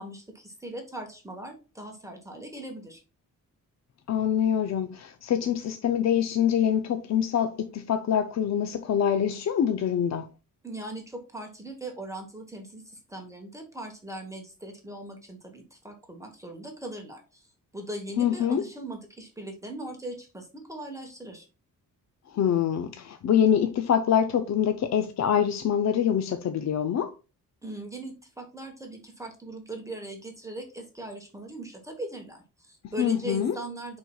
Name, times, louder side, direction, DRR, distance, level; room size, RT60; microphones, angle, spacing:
voice 1, 0.0-3.0 10.6-17.5 17.7-21.5 27.6-34.0, right 1 dB, 10° right, 1.1 m, -40 dB
voice 2, 4.1-10.3 18.2-18.6 22.3-27.2 33.0-33.6, left 9 dB, 55° left, 0.5 m, -25 dB
10.0 x 4.3 x 2.3 m
wide cardioid pair, 155°, 33 cm